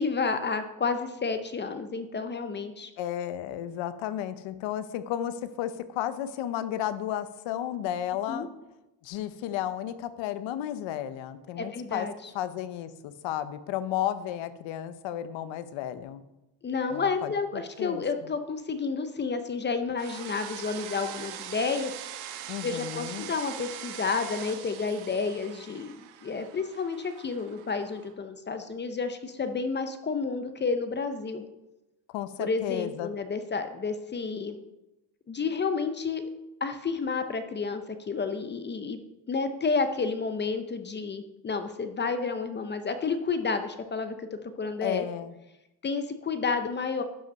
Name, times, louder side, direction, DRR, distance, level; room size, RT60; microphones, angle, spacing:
voice 1, 0.0-2.9 8.3-8.5 11.6-12.1 16.6-21.9 22.6-31.4 32.4-34.6 35.3-36.2 36.6-39.0 39.3-45.1 45.8-47.0, left 4 dB, 25° left, 9 dB, 0.5 m, -30 dB
voice 2, 3.0-8.5 9.0-12.1 12.3-16.2 16.9-18.0 22.5-23.3 32.1-33.1 44.8-45.3, left 11 dB, 80° left, 13 dB, 0.8 m, -33 dB
sound 1, 20.0-28.1, right 10 dB, 80° right, 1.0 m, -42 dB
11.5 x 5.3 x 5.2 m, 0.95 s
cardioid pair, 140°, 45 cm